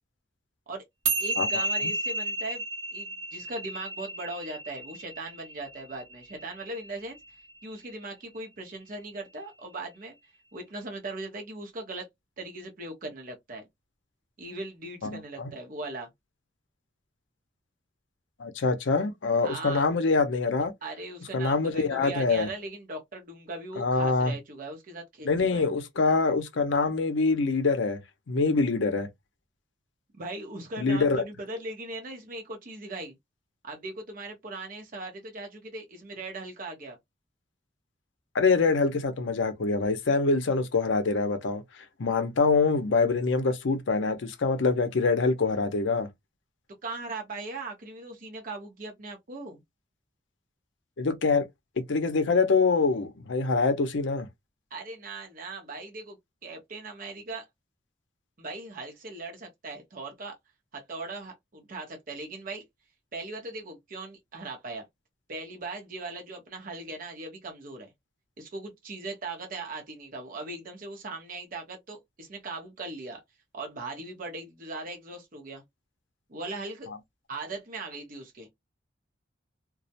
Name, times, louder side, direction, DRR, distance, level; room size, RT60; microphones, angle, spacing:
sound 1, 1.1-7.6, right 2 dB, 85° right, 0.8 m, -32 dB
voice 1, 1.2-2.6 2.9-7.2 7.6-10.1 10.5-12.1 12.4-13.6 14.4-16.1 19.4-19.8 20.8-25.7 30.1-33.2 33.6-37.0 46.8-49.6 54.7-57.5 58.4-60.4 60.7-62.6 63.1-64.9 65.3-67.9 68.4-73.2 73.5-75.6 76.3-76.9 77.3-78.5, right 2 dB, 45° right, 0.7 m, -39 dB
voice 2, 15.0-15.5 18.4-20.7 21.3-22.5 23.8-24.3 25.2-28.0 28.3-29.1 30.8-31.2 38.3-41.6 42.0-46.1 51.0-51.4 51.9-54.3, left 4 dB, 75° left, 0.5 m, -25 dB
2.3 x 2.0 x 2.7 m
head